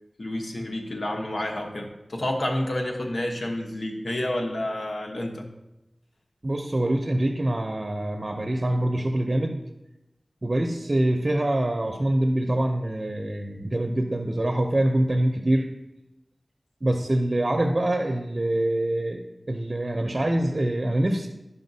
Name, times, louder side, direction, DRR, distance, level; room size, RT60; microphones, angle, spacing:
voice 1, 0.2-5.5, left 1 dB, 90° left, 1 dB, 1.1 m, -29 dB
voice 2, 6.4-9.6 10.4-15.7 16.8-19.2 19.5-21.3, right 1 dB, 50° right, 5 dB, 0.6 m, -25 dB
11.5 x 5.5 x 2.7 m, 0.94 s
wide cardioid pair, 40°, 0 cm